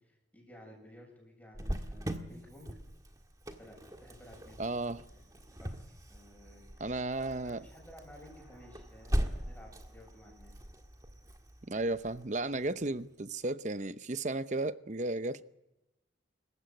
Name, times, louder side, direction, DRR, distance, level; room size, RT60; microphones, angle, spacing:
voice 1, 0.0-2.7 3.6-4.6 5.1-10.6, equal, 10° left, 7.5 m, -55 dB
Cricket, 1.5-13.0, equal, 20° right, 1.7 m, -40 dB
voice 2, 4.6-5.0 6.8-7.7 11.7-15.4, right 2 dB, 40° right, 0.8 m, -34 dB
27.0 x 15.5 x 9.2 m
head